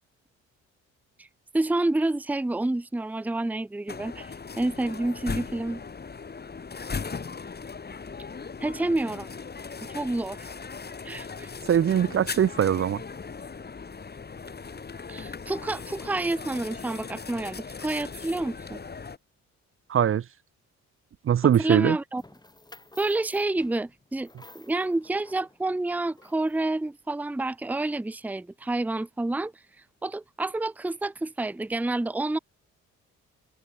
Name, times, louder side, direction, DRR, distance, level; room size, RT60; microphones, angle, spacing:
voice 1, 1.5-5.8 8.6-9.3 9.9-10.5 11.0-11.5 15.1-18.8 21.6-22.2 23.0-29.5 30.0-32.4, right 2 dB, 5° right, 0.7 m, -29 dB
sound 1, 3.9-19.2, left 5 dB, 35° left, 4.5 m, -38 dB
voice 2, 11.7-13.0 19.9-20.2 21.2-22.0, right 9 dB, 45° right, 0.8 m, -21 dB
sound 2, 22.2-26.9, left 2 dB, 15° left, 5.0 m, -53 dB
cardioid pair, 90°, 30 cm